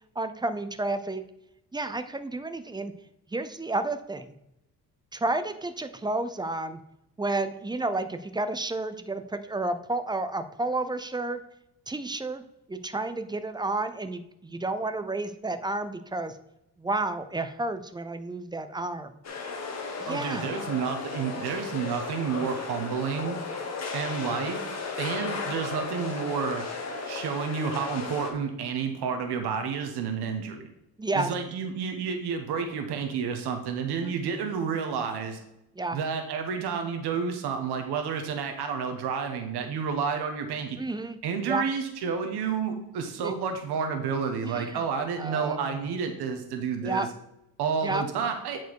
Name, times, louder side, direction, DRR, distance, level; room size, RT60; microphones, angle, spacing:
voice 1, 0.2-1.2 1.7-2.9 3.3-4.3 5.1-6.8 7.2-11.4 11.9-12.4 12.7-16.3 16.8-19.1 20.0-20.5 31.0-31.3 34.0-34.1 35.8-36.0 40.8-41.2 41.5-41.6 43.2-43.3 44.4-44.8 45.2-45.7 46.8-47.1 47.8-48.0, right 2 dB, 10° right, 10 dB, 0.5 m, -31 dB
sound 1, 19.2-28.3, left 4 dB, 40° left, 1.6 m, -35 dB
voice 2, 20.1-23.4 23.9-24.6 25.0-26.6 27.1-30.7 31.1-35.4 35.9-40.8 41.2-47.1 47.6-48.6, right 6 dB, 80° right, 5 dB, 1.2 m, -30 dB
9.1 x 4.6 x 4.6 m, 0.86 s
cardioid pair, 120°, 39 cm